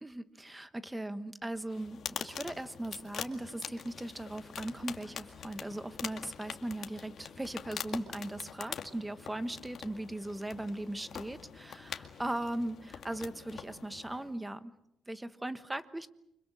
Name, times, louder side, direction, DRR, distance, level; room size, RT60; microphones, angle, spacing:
voice 1, 0.0-14.7 15.1-16.1, right 1 dB, 10° right, 12 dB, 1.2 m, -39 dB
sound 1, 1.7-14.3, left 8 dB, 55° left, 2.1 m, -44 dB
29.5 x 25.5 x 6.3 m, 0.80 s
cardioid pair, 135°, 0 cm